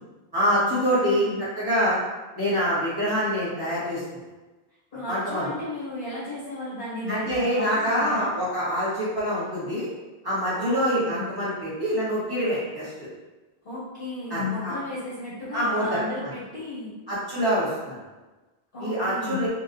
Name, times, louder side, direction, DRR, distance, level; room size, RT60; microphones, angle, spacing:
voice 1, 0.3-1.3 1.6-2.0 2.4-4.0 5.1-5.5 7.1-9.9 10.2-12.9 14.3-14.8 15.5-16.3 17.1-18.0 18.8-19.5, equal, 20° right, -11 dB, 1.4 m, -25 dB
voice 2, 0.9-1.4 4.9-8.3 10.6-11.2 13.6-16.9 18.7-19.5, left 2 dB, 65° left, -9 dB, 1.3 m, -34 dB
3.0 x 2.7 x 2.5 m, 1.2 s
omnidirectional pair, 1.0 m